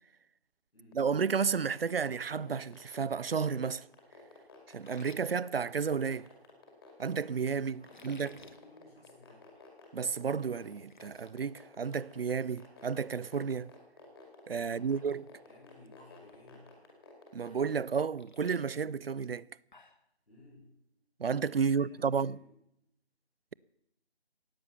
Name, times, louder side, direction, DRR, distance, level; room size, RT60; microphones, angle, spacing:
sound 1, 0.9-17.9, left 4 dB, 20° left, 2.4 m, -53 dB
voice 1, 0.9-3.9 4.7-6.3 7.0-8.3 9.9-13.7 14.5-15.2 17.3-19.5 21.2-22.4, right 6 dB, 65° right, 0.5 m, -32 dB
sound 2, 4.7-6.3 7.8-8.6 9.0-9.2 9.6-9.7 10.2-10.3 10.5-11.3 11.7-12.0 12.3-12.4 14.3-14.4 14.8-15.1 15.4-15.9 16.3-16.4 17.8-20.1, left 3 dB, 45° left, 1.1 m, -58 dB
voice 2, 7.8-9.6 14.5-15.0 15.4-16.7 20.3-20.7 21.5-22.5, left 2 dB, 65° left, 7.9 m, -58 dB
16.5 x 9.1 x 7.0 m
figure-of-eight pair, 160°, 33 cm